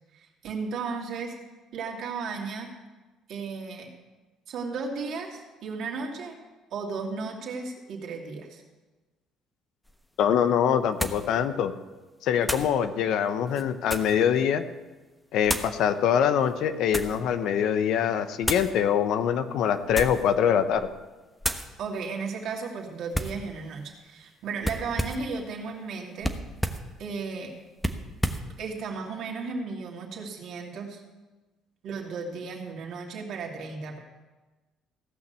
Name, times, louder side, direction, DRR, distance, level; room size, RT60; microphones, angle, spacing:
voice 1, 0.1-1.3 1.7-2.7 3.3-3.9 4.5-6.4 6.7-8.6 21.8-26.4 27.0-27.6 28.6-31.0 31.8-34.0, right 4 dB, 65° right, 0 dB, 2.6 m, -35 dB
sound 1, 9.9-10.0 11.0-11.3 12.4-12.7 13.5-14.2 15.4-15.8 16.5-17.2 18.4-18.7 19.8-20.3 20.7-21.0 21.4-21.7 23.1-23.4 24.6-25.3 26.2-26.9 27.8-28.5, equal, 5° left, 1.2 m, -31 dB
voice 2, 10.2-11.7 12.2-14.6 15.3-20.9, left 8 dB, 70° left, 10 dB, 0.9 m, -24 dB
17.0 x 6.1 x 8.1 m, 1.2 s
supercardioid pair, 70°, 0 cm